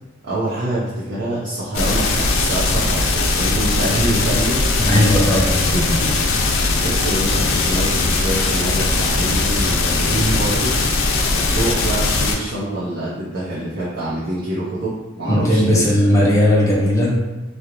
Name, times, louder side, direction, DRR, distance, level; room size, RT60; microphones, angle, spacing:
voice 1, 0.2-4.6 5.3-5.4 5.7-6.1 6.8-10.8 11.3-15.8, right 1 dB, 60° right, -8 dB, 0.5 m, -25 dB
sound 1, 1.7-12.4, left 3 dB, 75° left, 0.4 m, -19 dB
voice 2, 4.9-5.5 15.2-17.2, left 1 dB, 15° left, -5 dB, 0.5 m, -16 dB
2.4 x 2.0 x 2.8 m, 1.1 s
head